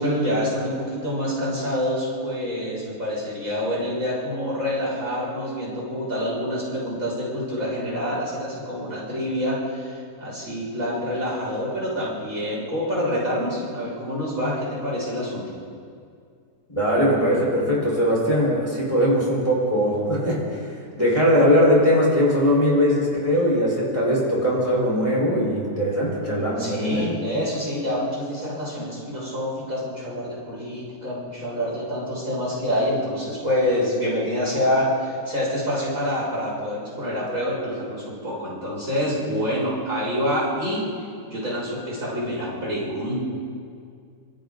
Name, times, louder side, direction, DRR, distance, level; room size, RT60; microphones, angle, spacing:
voice 1, 0.0-15.6 26.5-43.2, equal, 50° right, -6 dB, 7.5 m, -27 dB
voice 2, 16.7-20.6 21.0-27.0, equal, 20° left, -5 dB, 5.3 m, -20 dB
26.5 x 26.5 x 4.1 m, 2.3 s
omnidirectional pair, 1.8 m